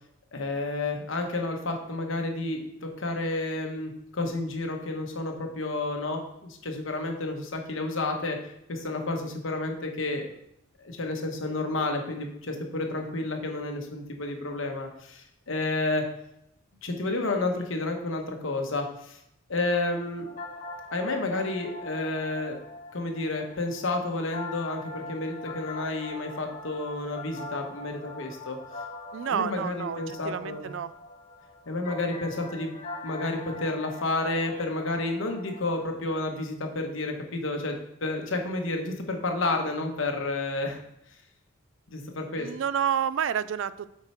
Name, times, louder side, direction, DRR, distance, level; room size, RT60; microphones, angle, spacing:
voice 1, 0.3-10.2 10.8-16.1 16.8-19.2 19.5-20.3 20.9-22.6 22.9-28.6 29.3-30.7 31.7-32.7 33.0-40.8 41.9-42.5, left 2 dB, 70° left, 3 dB, 1.1 m, -30 dB
sound 1, 19.6-35.9, left 2 dB, 45° left, 1.4 m, -42 dB
voice 2, 29.1-30.9 42.4-43.9, right 8 dB, 65° right, 15 dB, 0.3 m, -29 dB
7.5 x 4.6 x 4.4 m, 0.77 s
head